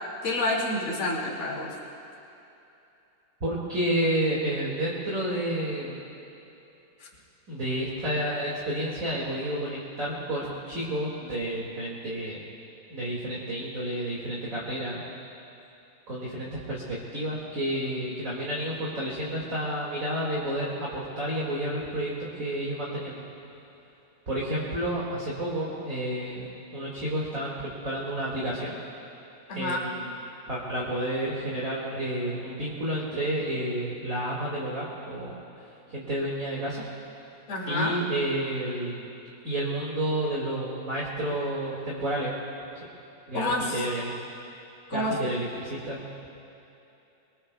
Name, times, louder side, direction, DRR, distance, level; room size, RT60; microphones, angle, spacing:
voice 1, 0.2-1.7 7.0-7.1 29.5-29.8 37.5-38.0 43.3-43.8 44.9-45.3, left 1 dB, 40° left, -4 dB, 3.0 m, -28 dB
voice 2, 3.4-6.0 7.5-12.4 12.9-15.0 16.1-23.3 24.3-28.7 29.5-30.1 30.5-35.3 35.9-36.9 37.7-39.1 39.4-42.3 43.3-44.1 44.9-46.0, right 1 dB, 30° right, -6 dB, 2.1 m, -30 dB
24.5 x 23.5 x 2.4 m, 2.9 s
omnidirectional pair, 3.8 m